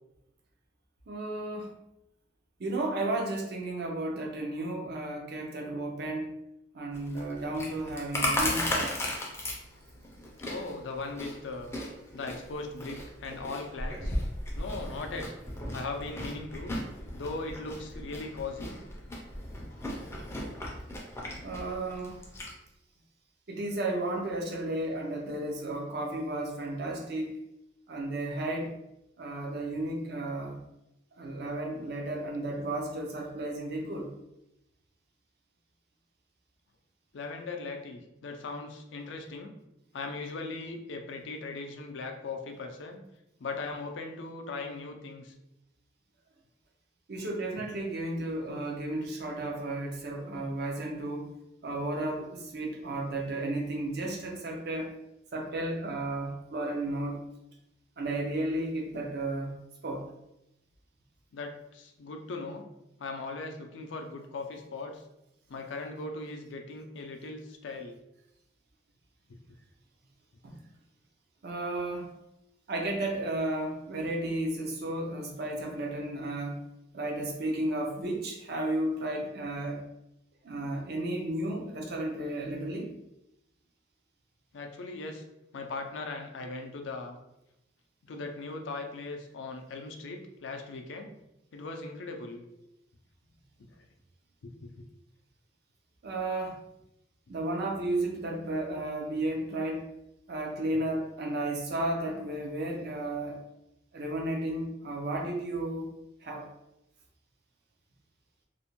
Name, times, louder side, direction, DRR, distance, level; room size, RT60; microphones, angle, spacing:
voice 1, 1.1-1.7 2.6-6.3 6.7-9.0 21.4-22.3 23.5-27.3 27.9-28.8 29.2-30.6 31.1-34.1 47.1-51.3 51.6-54.9 55.3-57.2 58.0-59.5 59.8-60.1 70.4-70.6 71.4-72.2 72.7-76.6 76.9-79.8 80.4-82.9 96.0-96.6 97.3-99.9 100.3-103.4 103.9-105.9 106.2-106.5, right 1 dB, 55° right, 1 dB, 0.5 m, -33 dB
Chewing mastication, 6.9-22.5, left 1 dB, 15° left, 0.4 m, -36 dB
voice 2, 10.5-11.8 12.1-14.1 14.5-15.3 15.7-16.7 17.1-18.8 37.1-39.5 39.9-43.0 43.4-45.3 61.3-62.6 63.0-65.0 65.5-68.0 69.3-69.4 84.5-85.2 85.5-87.2 88.1-91.1 91.5-92.4 94.4-94.8, left 3 dB, 70° left, 4 dB, 0.4 m, -39 dB
2.5 x 2.1 x 2.9 m, 0.87 s
head